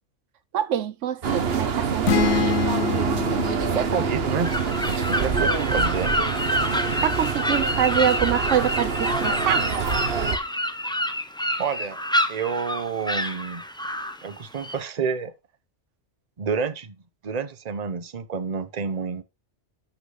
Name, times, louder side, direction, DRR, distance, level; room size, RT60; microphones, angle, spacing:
voice 1, 0.5-2.6 7.0-9.7, right 10 dB, 80° right, 1.1 m, -25 dB
sound 1, 1.2-10.4, right 6 dB, 55° right, 1.2 m, -26 dB
sound 2, 2.1-5.8, left 5 dB, 80° left, 1.3 m, -27 dB
voice 2, 3.7-4.5 5.1-6.1 11.6-12.0 12.3-13.6 14.2-15.3 16.4-17.0 17.2-19.2, right 6 dB, 35° right, 1.0 m, -29 dB
sound 3, 4.4-14.8, equal, 5° left, 0.8 m, -27 dB
11.5 x 6.4 x 3.9 m
omnidirectional pair, 1.2 m